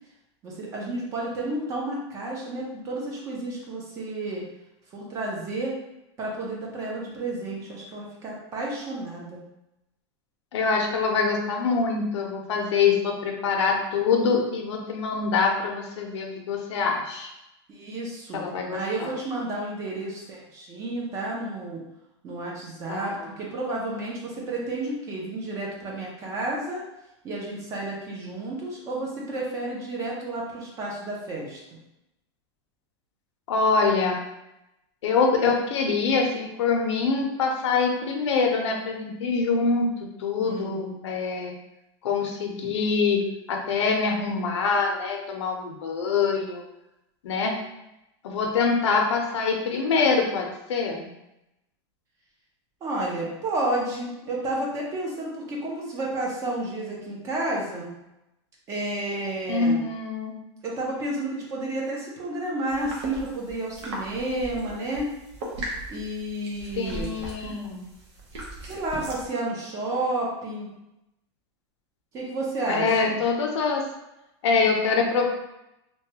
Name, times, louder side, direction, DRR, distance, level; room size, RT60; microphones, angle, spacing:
voice 1, 0.4-4.4 4.9-5.7 6.2-9.4 17.7-18.4 18.7-21.8 22.2-26.8 27.2-31.6 40.4-40.8 52.8-57.9 58.7-59.8 60.6-65.1 65.9-67.1 68.6-70.7 72.1-73.2, right 2 dB, 20° right, -2 dB, 0.5 m, -31 dB
voice 2, 10.5-17.3 18.3-19.1 22.9-23.3 33.5-34.2 35.0-39.9 40.2-41.5 42.0-43.2 43.5-46.6 47.2-47.6 48.2-51.1 59.5-60.4 66.8-67.8 72.7-73.9 74.4-75.2, left 4 dB, 90° left, 2 dB, 0.6 m, -24 dB
sound 1, 62.7-69.3, right 1 dB, 75° right, 0.9 m, -38 dB
3.0 x 2.2 x 2.8 m, 0.90 s
supercardioid pair, 165°, 14 cm